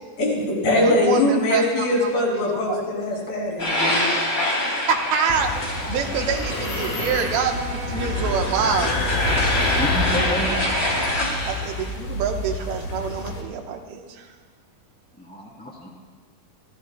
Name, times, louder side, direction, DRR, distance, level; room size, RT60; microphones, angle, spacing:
voice 1, 0.2-4.1, left 1 dB, 85° left, -3 dB, 4.9 m, -22 dB
voice 2, 0.7-2.8 4.8-9.0 11.5-14.3, right 6 dB, 85° right, 3 dB, 2.9 m, -26 dB
sound 1, 3.6-11.9, left 1 dB, 25° left, 2.3 m, -26 dB
sound 2, 5.3-13.4, left 2 dB, 65° left, 2.9 m, -28 dB
Bowed string instrument, 6.1-11.0, right 3 dB, 60° right, 3.2 m, -38 dB
voice 3, 9.0-9.4 9.7-10.6 15.2-15.9, left 1 dB, 5° left, -3 dB, 1.8 m, -31 dB
27.0 x 13.0 x 2.2 m, 1.5 s
omnidirectional pair, 4.2 m